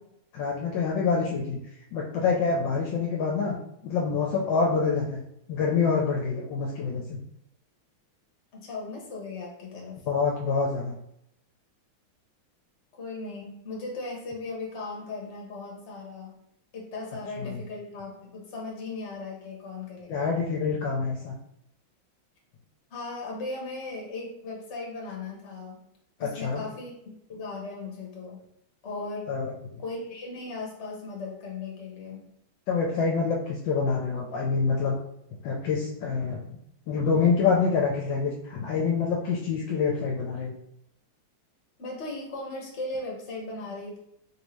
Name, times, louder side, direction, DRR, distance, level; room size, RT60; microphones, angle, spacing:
voice 1, 0.3-1.6 1.9-3.6 3.8-5.2 5.5-7.2 10.1-11.0 17.4-17.6 20.1-21.3 26.2-26.6 29.3-29.5 32.7-35.0 35.4-36.4 36.9-40.5, left 5 dB, 75° left, -2 dB, 1.2 m, -26 dB
voice 2, 8.5-10.0 13.0-16.4 16.7-20.4 22.9-25.9 26.2-26.9 27.3-28.4 28.8-29.3 29.8-32.3 41.8-44.0, left 3 dB, 45° left, -1 dB, 0.9 m, -37 dB
3.3 x 2.7 x 3.0 m, 0.77 s
omnidirectional pair, 2.3 m